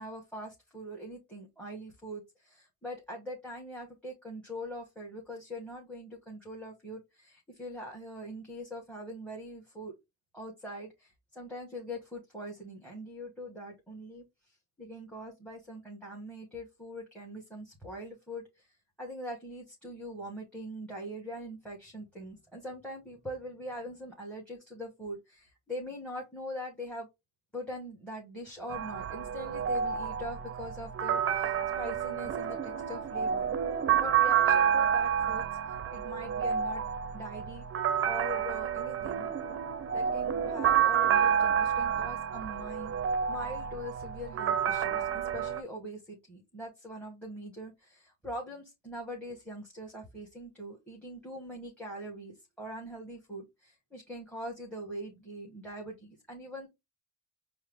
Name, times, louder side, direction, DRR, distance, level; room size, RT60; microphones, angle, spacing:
voice 1, 0.0-9.9 10.3-27.1 27.5-33.5 34.0-36.8 37.1-37.6 38.1-39.3 39.9-42.9 43.3-56.7, equal, 5° left, -1 dB, 1.3 m, -42 dB
sound 1, 28.7-45.6, right 8 dB, 30° right, 0.5 m, -29 dB
4.5 x 2.0 x 3.4 m, 0.21 s
supercardioid pair, 80°, 44 cm